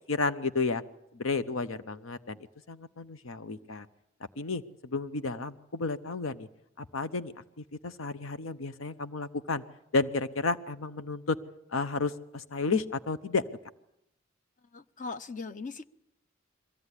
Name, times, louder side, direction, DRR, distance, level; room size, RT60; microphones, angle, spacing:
voice 1, 0.1-0.8 1.1-2.4 2.7-3.9 4.4-6.5 6.8-7.3 7.8-9.6 9.9-11.4 11.7-13.4, left 3 dB, 80° left, 12 dB, 0.8 m, -32 dB
voice 2, 14.7-15.9, left 4 dB, 40° left, 12 dB, 0.8 m, -39 dB
22.5 x 15.5 x 9.8 m, 0.81 s
head